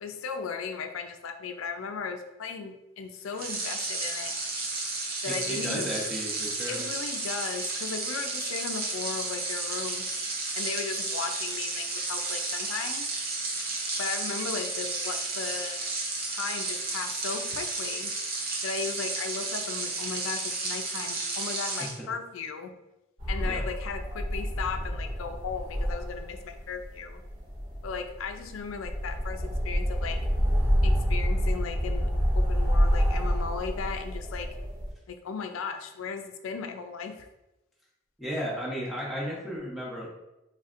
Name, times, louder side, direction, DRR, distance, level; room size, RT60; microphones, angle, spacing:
voice 1, 0.0-4.4 5.2-5.9 6.7-10.1 10.5-13.1 14.0-15.8 16.3-18.2 18.6-22.7 23.3-27.2 27.8-30.2 30.8-34.6 35.1-37.3, left 5 dB, 85° left, 6 dB, 0.4 m, -36 dB
sound 1, 3.3-22.0, right 3 dB, 50° right, 0.7 m, -32 dB
voice 2, 5.2-6.8 21.8-22.1 23.4-23.6 38.2-40.1, equal, ahead, -5 dB, 0.9 m, -34 dB
sound 2, 23.2-34.9, equal, 80° right, 1.4 m, -28 dB
4.1 x 3.2 x 2.5 m, 0.95 s
head